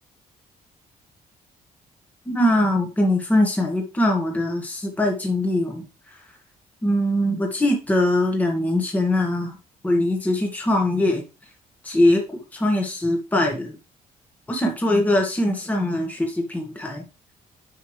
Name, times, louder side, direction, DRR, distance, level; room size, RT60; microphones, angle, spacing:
voice 1, 2.2-6.3 6.8-9.6 9.8-11.2 11.8-13.8 14.5-17.0, left 1 dB, 10° left, 1 dB, 1.6 m, -22 dB
9.3 x 5.9 x 3.3 m, 0.30 s
cardioid pair, 140°, 15 cm